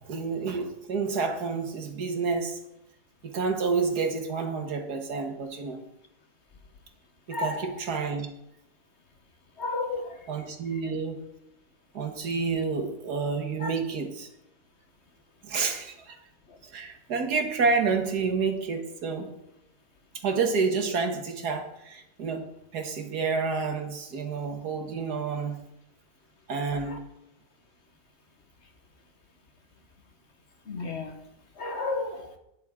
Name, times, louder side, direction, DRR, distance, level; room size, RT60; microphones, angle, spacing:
voice 1, 0.0-2.6 3.2-5.8 7.3-8.3 10.3-11.2 11.9-14.3 15.4-16.2 16.6-19.4 20.2-25.6 26.5-27.0, right 4 dB, 85° right, 5 dB, 1.9 m, -29 dB
voice 2, 7.3-7.7 9.6-10.2 13.6-13.7 26.8-27.0 30.7-31.2 31.6-32.3, left 3 dB, 50° left, 6 dB, 1.4 m, -32 dB
12.0 x 10.5 x 3.6 m, 0.82 s
omnidirectional pair, 1.6 m